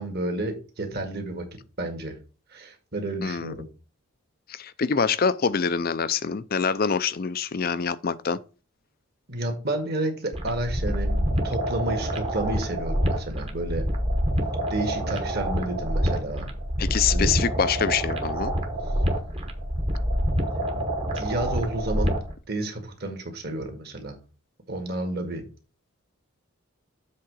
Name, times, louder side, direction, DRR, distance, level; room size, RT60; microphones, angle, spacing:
voice 1, 0.0-1.5 1.8-2.2 2.5-3.7 9.3-13.9 14.7-16.5 17.1-17.3 20.7-20.8 21.1-22.2 22.5-24.2 24.7-25.4, right 1 dB, 45° right, 1.8 m, -31 dB
voice 2, 3.2-3.5 4.5-8.4 16.8-18.5, left 6 dB, 40° left, 0.4 m, -25 dB
sound 1, 10.3-22.3, equal, 25° right, 1.1 m, -27 dB
7.5 x 3.7 x 6.2 m
head